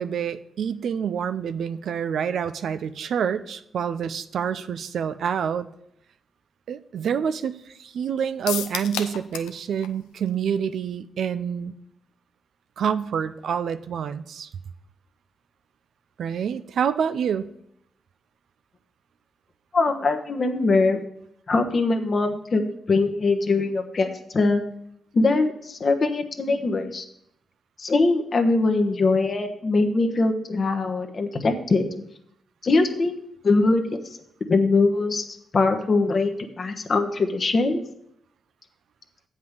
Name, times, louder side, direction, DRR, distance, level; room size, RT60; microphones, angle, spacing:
voice 1, 0.0-5.7 6.7-11.7 12.8-14.5 16.2-17.5, right 7 dB, 75° right, 12 dB, 0.4 m, -27 dB
sound 1, 8.5-9.6 9.8-9.9 10.3-10.4, left 10 dB, 90° left, 0.5 m, -31 dB
voice 2, 19.7-21.0 21.5-22.6 22.9-24.6 25.1-27.0 27.8-31.8 32.6-33.2 33.4-34.0 34.5-35.2 35.5-37.8, left 3 dB, 55° left, 6 dB, 1.1 m, -22 dB
7.8 x 5.4 x 6.6 m, 0.74 s
supercardioid pair, 40°, 0 cm